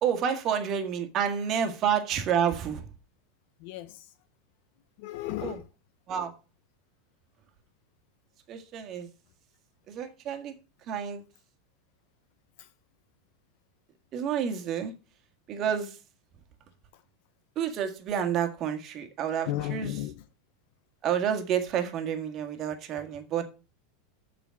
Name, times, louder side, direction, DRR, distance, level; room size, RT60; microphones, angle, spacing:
voice 1, 0.0-2.8 5.4-5.6 6.1-6.3 8.5-9.1 9.9-10.5 10.9-11.2 14.1-14.9 15.5-16.0 17.6-19.9 21.0-23.4, right 8 dB, 35° right, 1.7 m, -29 dB
voice 2, 3.6-4.1 5.0-5.7 12.6-12.7 16.9-17.0 19.5-20.2, left 14 dB, 55° left, 0.6 m, -35 dB
7.2 x 5.0 x 7.0 m
supercardioid pair, 155°, 0 cm